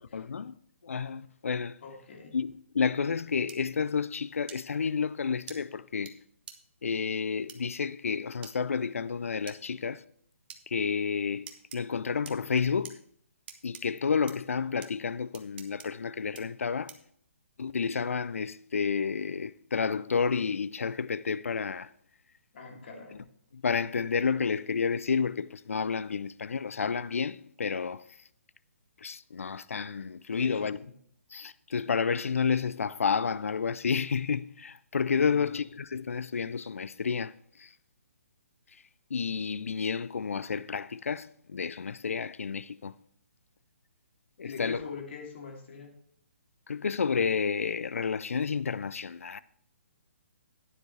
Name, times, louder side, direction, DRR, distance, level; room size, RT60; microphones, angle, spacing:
voice 1, 0.1-0.6 0.8-1.8 2.3-6.2 6.8-10.0 10.7-13.0 13.6-17.0 17.6-21.9 22.7-22.8 23.5-28.0 29.0-30.8 31.3-37.7 38.7-38.8 39.1-42.9 44.4-44.9 46.7-49.4, left 5 dB, 80° left, 0.4 m, -30 dB
voice 2, 1.8-2.4 22.5-23.2 30.4-30.9 35.2-35.5 44.4-45.9, left 5 dB, 55° left, 2.9 m, -43 dB
sound 1, 3.5-3.6 4.5-4.6 5.5-5.6 6.1-6.2 6.5-6.6 7.5-7.6 8.4-8.5 9.5-9.6 10.5-10.6 11.5-11.8 12.2-12.9 13.5-13.8 14.3-14.4 14.8-14.9 15.3-15.9 16.3-16.4 16.9-17.1, right 8 dB, 45° right, 1.1 m, -45 dB
11.5 x 9.7 x 3.3 m
figure-of-eight pair, 140°, 7 cm